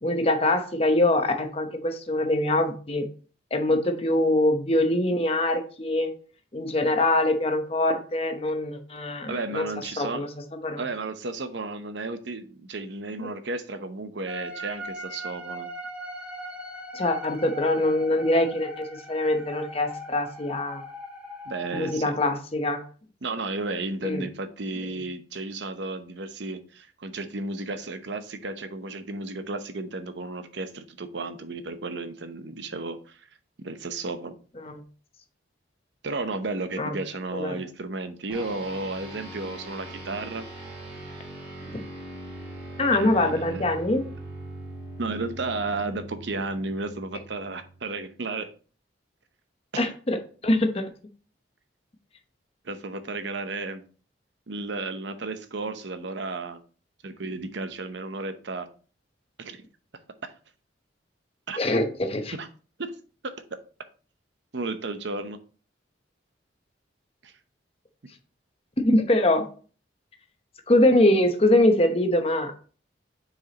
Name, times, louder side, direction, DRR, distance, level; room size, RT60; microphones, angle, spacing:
voice 1, 0.0-3.0 3.5-6.1 6.5-9.7 10.0-10.3 10.6-10.8 13.2-13.3 16.9-20.8 21.7-22.8 24.0-24.2 34.6-34.8 36.8-36.9 37.3-37.6 41.7-41.8 42.8-44.1 49.8-50.2 50.4-50.9 61.6-62.3 68.8-69.5 70.7-72.6, left 1 dB, 30° left, 5 dB, 0.9 m, -23 dB
voice 2, 9.3-10.3 10.8-15.7 21.5-22.2 23.2-33.3 33.6-34.3 36.0-40.4 42.9-43.7 45.0-48.5 49.7-49.9 52.6-53.8 54.5-56.6 57.0-58.7 59.4-59.6 60.2-60.3 61.5-61.6 62.3-62.5 62.8-62.9 64.5-65.4 67.2-67.3, right 3 dB, 70° right, 9 dB, 0.8 m, -33 dB
sound 1, 14.3-22.0, equal, 5° right, 1.0 m, -39 dB
sound 2, 38.3-48.0, right 1 dB, 30° right, 2.8 m, -41 dB
7.6 x 4.8 x 2.9 m, 0.39 s
head